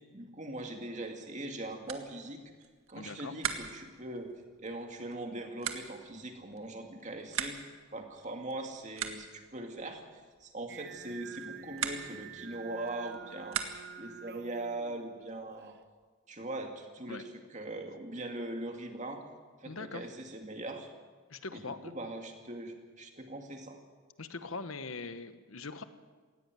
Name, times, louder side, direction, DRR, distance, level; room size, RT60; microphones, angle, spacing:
voice 1, 0.1-2.4 2.9-4.3 4.6-7.6 7.9-13.6 14.0-15.7 16.3-17.2 17.5-19.2 19.6-20.9 21.5-23.8, right 2 dB, 35° right, 4 dB, 2.3 m, -41 dB
sound 1, 1.8-14.1, right 8 dB, 85° right, 1.8 m, -43 dB
voice 2, 2.9-3.3 17.1-17.2 19.6-20.1 21.3-21.9 24.2-25.8, left 3 dB, 80° left, 11 dB, 1.3 m, -41 dB
Singing, 10.7-15.8, right 7 dB, 55° right, 0.8 m, -48 dB
18.0 x 16.5 x 9.2 m, 1.5 s
head